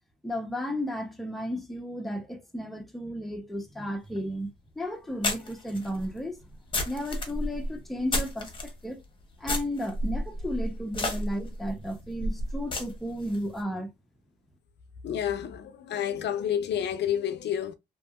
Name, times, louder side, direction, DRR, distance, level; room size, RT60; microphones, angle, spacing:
voice 1, 0.2-6.4 6.8-9.0 9.4-13.9, equal, ahead, 0.6 m, -34 dB
sound 1, 4.2-4.3 5.2-8.7 9.4-13.4, left 1 dB, 25° left, 0.9 m, -32 dB
voice 2, 15.0-17.7, left 9 dB, 60° left, 0.4 m, -29 dB
2.7 x 2.6 x 2.3 m
cardioid pair, 90°, 20 cm